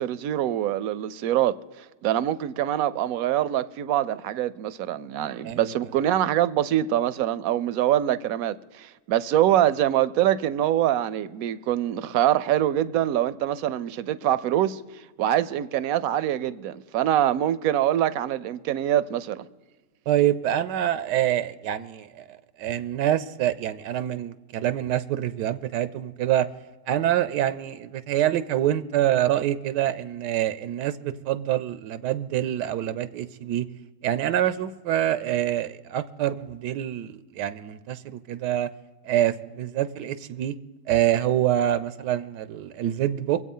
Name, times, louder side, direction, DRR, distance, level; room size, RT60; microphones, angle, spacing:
voice 1, 0.0-19.5, right 12 dB, 70° right, 0.9 m, -24 dB
voice 2, 20.1-26.5 26.9-33.7 34.0-38.7 39.0-40.6 40.9-43.4, right 12 dB, 85° right, 1.2 m, -26 dB
23.5 x 8.1 x 5.4 m
omnidirectional pair, 1.8 m